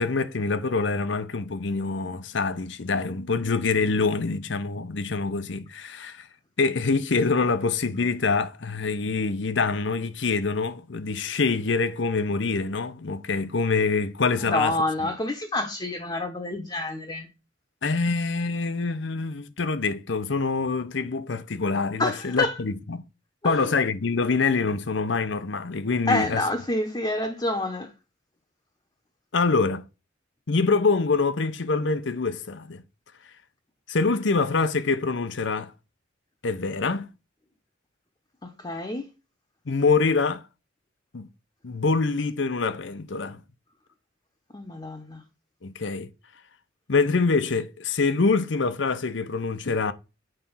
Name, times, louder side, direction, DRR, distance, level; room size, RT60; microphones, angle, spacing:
voice 1, 0.0-6.3 6.6-14.8 15.0-15.1 17.8-23.0 23.4-26.4 29.3-29.9 30.5-32.8 33.9-35.7 36.4-37.1 39.7-40.4 41.1-41.3 41.6-43.4 45.6-46.1 46.9-49.9, left 4 dB, 65° left, 0.7 m, -25 dB
voice 2, 14.3-17.3 22.0-22.6 23.4-23.6 26.1-27.9 38.4-39.0 44.5-45.2, left 2 dB, 20° left, 0.9 m, -28 dB
8.0 x 4.1 x 5.6 m
head